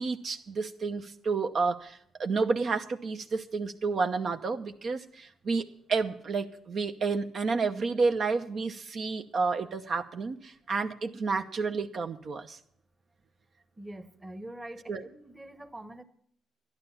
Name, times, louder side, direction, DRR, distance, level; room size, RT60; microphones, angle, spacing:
voice 1, 0.0-12.6 14.9-15.1, right 4 dB, 50° right, 6 dB, 0.9 m, -30 dB
voice 2, 13.8-16.0, right 1 dB, 15° right, 9 dB, 1.2 m, -44 dB
12.0 x 11.0 x 5.7 m, 0.65 s
cardioid pair, 90°, 0 cm